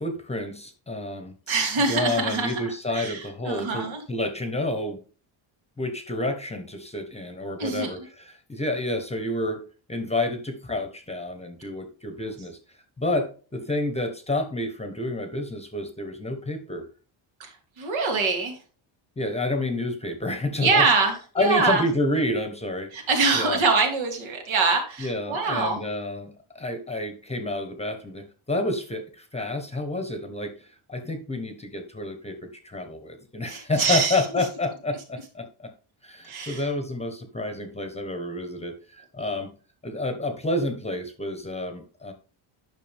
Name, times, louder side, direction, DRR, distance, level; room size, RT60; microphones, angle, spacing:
voice 1, 0.0-1.3 1.9-5.0 5.8-9.6 9.9-12.6 13.0-16.9 19.2-20.9 21.3-23.1 23.3-23.6 25.0-35.7 36.0-39.5 39.8-42.1, left 1 dB, 15° left, 7 dB, 1.1 m, -29 dB
voice 2, 1.5-2.6 2.9-4.0 7.6-7.9 17.4-18.6 20.6-21.8 22.9-25.8 33.5-34.2 36.3-36.6, right 4 dB, 70° right, 2 dB, 3.1 m, -24 dB
10.0 x 6.1 x 3.5 m, 0.38 s
cardioid pair, 160°, 49 cm